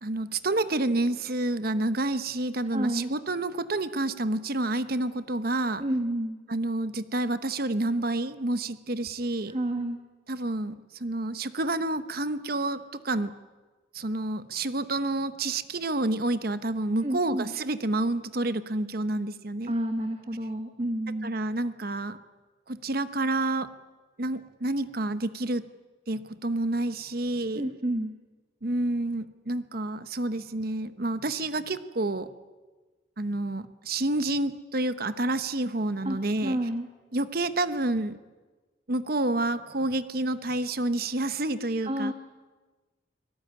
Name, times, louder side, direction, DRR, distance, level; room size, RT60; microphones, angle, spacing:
voice 1, 0.0-5.8 6.5-9.6 10.3-13.3 13.9-19.7 21.2-22.2 22.7-23.7 24.2-25.6 26.1-27.7 28.6-32.3 33.2-36.6 37.1-38.2 38.9-42.1, right 2 dB, 50° right, 12 dB, 1.0 m, -29 dB
voice 2, 2.7-3.1 5.8-6.4 9.5-10.0 17.0-17.5 19.7-21.3 27.5-28.1 36.0-36.9 41.8-42.1, right 1 dB, 30° right, 6 dB, 1.3 m, -30 dB
24.5 x 18.5 x 9.6 m, 1.3 s
head